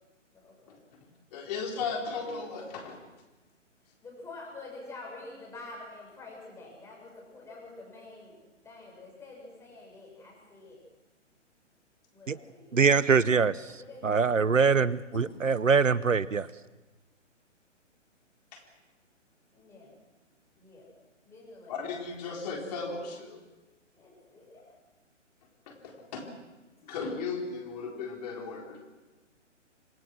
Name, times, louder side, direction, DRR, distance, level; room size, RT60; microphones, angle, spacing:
voice 1, 0.3-0.8 4.0-8.3 8.6-10.8 12.1-12.8 13.7-14.3 16.2-16.5 19.5-19.9 20.5-20.9 21.2-21.8 23.9-24.8, left 2 dB, 5° left, -2 dB, 6.8 m, -47 dB
voice 2, 1.3-3.0 15.1-15.2 18.5-18.6 21.7-23.4 25.7-26.2 26.8-28.9, left 4 dB, 30° left, 1 dB, 4.3 m, -36 dB
voice 3, 12.7-13.6 14.0-16.5, right 5 dB, 85° right, 19 dB, 0.8 m, -23 dB
27.0 x 19.5 x 6.3 m, 1.1 s
figure-of-eight pair, 135°, 37 cm